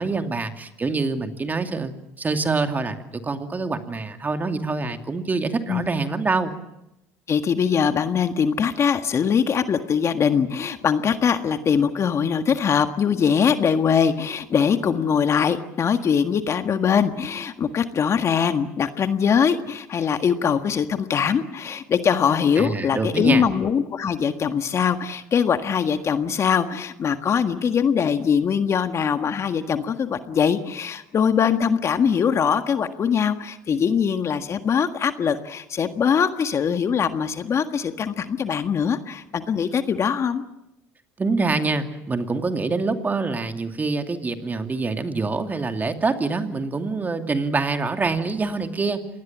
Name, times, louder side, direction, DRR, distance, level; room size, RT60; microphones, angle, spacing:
voice 1, 0.0-3.0 3.2-6.5 22.6-23.4 41.2-49.0, right 3 dB, 25° right, 6 dB, 2.6 m, -25 dB
voice 2, 7.3-40.4, left 7 dB, 40° left, 9 dB, 1.6 m, -22 dB
27.0 x 20.0 x 7.4 m, 0.85 s
supercardioid pair, 85°, 7 cm